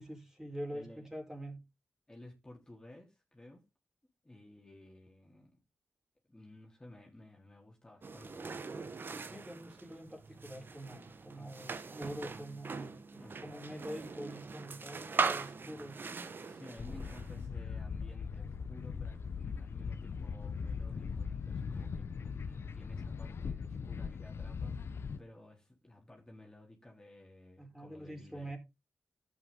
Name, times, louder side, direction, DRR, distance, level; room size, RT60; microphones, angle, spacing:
voice 1, 0.0-1.6 9.3-16.0 27.6-28.6, right 1 dB, 10° right, 4.9 m, -45 dB
voice 2, 0.7-1.1 2.1-3.6 4.2-5.6 6.3-9.3 11.3-11.6 13.2-13.6 16.4-28.6, left 1 dB, 15° left, 3.9 m, -55 dB
sound 1, 8.0-17.5, right 4 dB, 50° right, 1.4 m, -40 dB
sound 2, 16.8-25.2, left 5 dB, 65° left, 1.0 m, -40 dB
11.5 x 8.7 x 4.0 m
cardioid pair, 60°, 4 cm